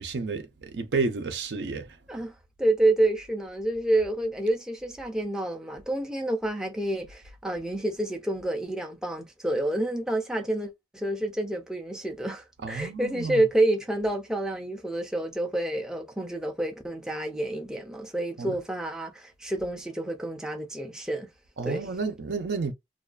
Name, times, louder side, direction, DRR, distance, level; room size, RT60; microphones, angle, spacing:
voice 1, 0.0-2.0 12.6-13.5 18.4-18.6 21.6-22.7, right 4 dB, 70° right, 0.5 m, -31 dB
voice 2, 2.6-21.3 21.6-21.9, right 1 dB, 5° right, 0.4 m, -28 dB
2.4 x 2.2 x 2.4 m
head